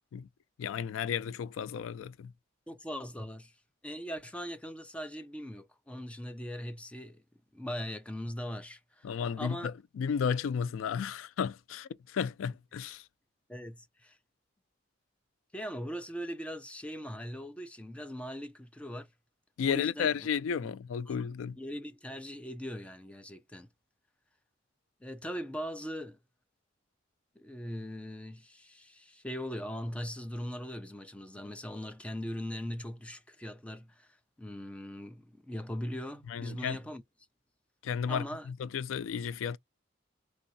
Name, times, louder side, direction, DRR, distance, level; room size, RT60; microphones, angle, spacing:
voice 1, 0.6-2.3 9.0-13.0 19.6-21.6 36.3-36.8 37.8-39.6, left 7 dB, 85° left, 0.3 m, -33 dB
voice 2, 2.7-3.5 3.8-7.2 7.5-9.7 13.5-14.2 15.5-19.1 19.6-20.3 20.6-20.7 21.1-21.2 21.6-23.7 25.0-26.2 27.4-37.0 38.1-38.5, equal, 5° left, 0.3 m, -40 dB
3.1 x 2.6 x 2.6 m
head